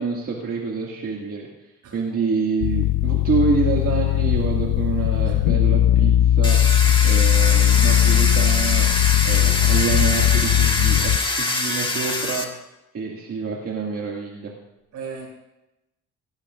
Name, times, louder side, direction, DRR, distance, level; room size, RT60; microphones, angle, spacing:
voice 1, 0.0-1.5 1.9-6.6 7.0-8.9 9.2-12.5 12.9-14.5, right 5 dB, 50° right, 2.2 m, -27 dB
voice 2, 1.8-2.2 5.2-5.4 14.9-15.3, right 5 dB, 80° right, 6.3 m, -36 dB
sound 1, 2.6-11.2, left 12 dB, 85° left, 0.7 m, -18 dB
Domestic sounds home sounds, 6.4-12.4, left 2 dB, 15° left, 1.9 m, -24 dB
17.5 x 17.0 x 2.5 m
cardioid pair, 90°, 30 cm